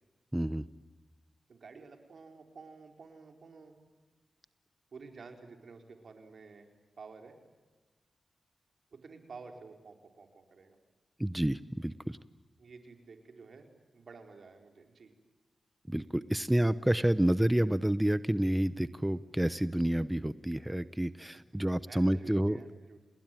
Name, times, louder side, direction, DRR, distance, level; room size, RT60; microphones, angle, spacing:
voice 1, 0.3-0.6 11.2-12.2 15.9-22.6, right 1 dB, 10° right, 14 dB, 0.8 m, -29 dB
voice 2, 1.5-3.8 4.9-6.7 7.0-7.4 8.9-10.8 12.6-15.1 21.9-23.0, right 4 dB, 70° right, 4 dB, 4.2 m, -51 dB
29.5 x 20.0 x 9.1 m, 1.2 s
cardioid pair, 50°, 0 cm